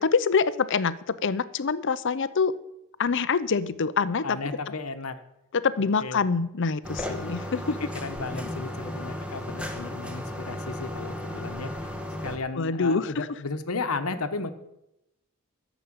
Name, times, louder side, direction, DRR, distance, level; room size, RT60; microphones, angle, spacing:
voice 1, 0.0-2.6 3.0-4.4 5.5-7.8 8.3-8.5 12.6-13.3, left 5 dB, 60° left, 15 dB, 0.6 m, -25 dB
voice 2, 4.2-5.2 6.0-6.2 7.6-11.9 12.2-14.5, left 3 dB, 85° left, 9 dB, 1.2 m, -34 dB
sound 1, 6.8-12.4, left 1 dB, 5° right, 1.4 m, -35 dB
12.5 x 7.2 x 8.8 m, 0.88 s
head